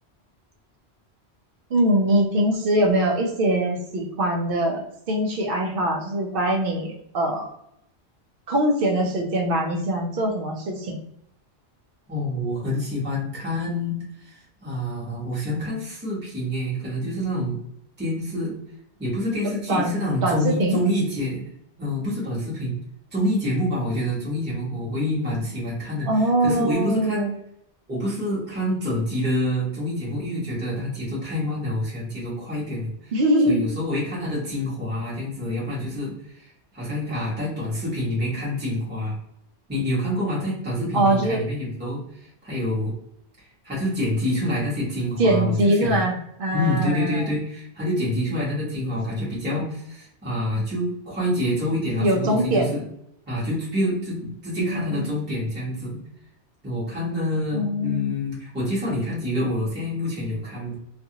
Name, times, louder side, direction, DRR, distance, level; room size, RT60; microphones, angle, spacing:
voice 1, 1.7-7.5 8.5-10.9 19.7-20.8 26.1-27.3 33.1-33.6 40.9-41.4 45.2-46.1 46.4-47.3 52.0-52.7 54.6-55.1 57.5-58.2, right 1 dB, 60° right, 2 dB, 0.8 m, -22 dB
voice 2, 12.1-17.6 18.0-18.5 19.0-21.4 21.8-22.8 23.1-27.3 27.9-33.1 33.4-39.2 39.7-43.0 43.4-46.0 46.5-52.8 53.3-56.0 56.6-60.8, left 1 dB, 10° right, -8 dB, 0.9 m, -27 dB
2.5 x 2.4 x 2.7 m, 0.74 s
omnidirectional pair, 1.1 m